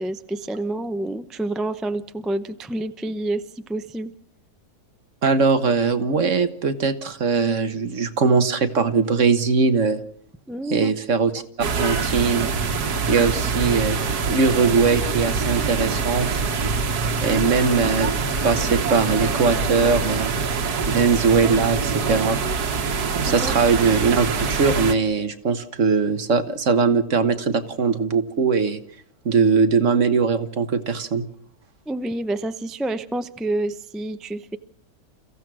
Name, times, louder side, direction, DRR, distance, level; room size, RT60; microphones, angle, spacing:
voice 1, 0.0-3.4 3.7-4.1 10.5-10.9 17.3-17.4 23.3-23.7 31.9-34.6, right 2 dB, ahead, 10 dB, 0.4 m, -28 dB
voice 2, 5.2-10.0 10.7-11.4 11.7-12.5 13.1-16.3 17.2-18.1 18.4-20.3 20.9-22.4 23.1-28.8 29.3-31.3, right 5 dB, 55° right, 9 dB, 1.6 m, -20 dB
sound 1, 11.6-24.9, right 5 dB, 90° right, 1.9 m, -24 dB
29.0 x 15.5 x 6.2 m, 0.66 s
omnidirectional pair, 1.6 m